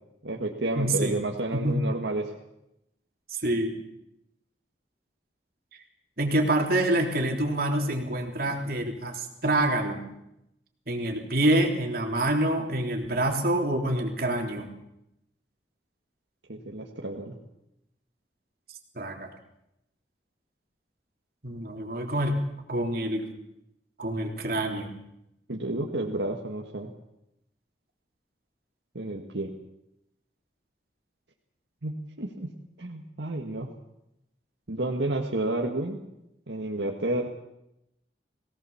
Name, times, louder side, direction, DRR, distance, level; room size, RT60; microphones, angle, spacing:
voice 1, 0.2-2.3 16.5-17.4 25.5-26.9 28.9-29.5 31.8-32.5 32.8-33.7 34.7-36.0 36.5-37.3, right 2 dB, 85° right, 1 dB, 1.9 m, -31 dB
voice 2, 0.8-1.2 1.5-1.8 3.3-3.8 6.2-10.0 10.9-14.7 19.0-19.3 21.4-22.4 22.7-23.3 24.0-24.9, right 1 dB, 55° right, 2 dB, 3.5 m, -26 dB
22.0 x 18.0 x 7.3 m, 0.85 s
head